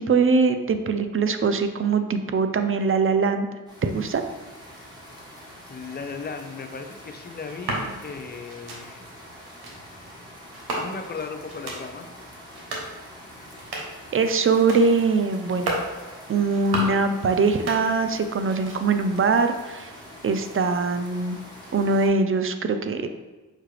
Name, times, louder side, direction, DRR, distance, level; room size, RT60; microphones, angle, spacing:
voice 1, 0.0-3.5 3.8-4.2 14.1-15.8 16.3-19.9 20.2-21.4 21.7-23.1, right 4 dB, 35° right, 8 dB, 0.5 m, -22 dB
sound 1, 3.7-22.1, equal, 10° right, 1.5 m, -45 dB
voice 2, 5.7-9.0 10.8-12.1, left 4 dB, 25° left, 6 dB, 0.5 m, -36 dB
sound 2, 7.4-7.9 8.5-8.8 9.4-9.8 10.5-11.1 11.5-11.8 12.4-12.9 13.4-14.0 14.5-14.9 15.4-15.9 16.4-17.0 17.4-18.2 18.4-19.0, right 2 dB, 80° right, 1.0 m, -33 dB
5.6 x 2.4 x 3.2 m, 1.2 s
supercardioid pair, 50°, 38 cm